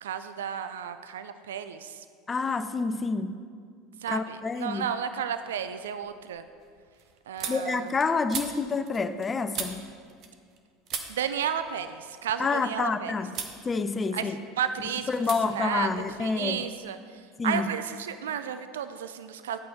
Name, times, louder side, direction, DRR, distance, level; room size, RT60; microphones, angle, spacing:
voice 1, 0.0-1.9 4.0-6.4 7.3-7.9 11.1-13.1 14.1-14.2 14.6-15.1 15.5-15.9 16.2-17.0 17.4-19.6, right 8 dB, 75° right, 11 dB, 0.4 m, -32 dB
voice 2, 2.3-3.4 4.1-4.9 7.5-9.9 12.4-13.4 13.6-14.4 15.1-16.7 17.4-17.7, left 4 dB, 25° left, 11 dB, 0.6 m, -28 dB
sound 1, 4.6-5.2 5.5-10.6 10.9-12.9 13.3-13.6 14.0-14.7 15.2-15.4 15.7-16.7, right 7 dB, 50° right, 1.1 m, -40 dB
10.5 x 8.6 x 4.3 m, 2.1 s
figure-of-eight pair, 75°, 0 cm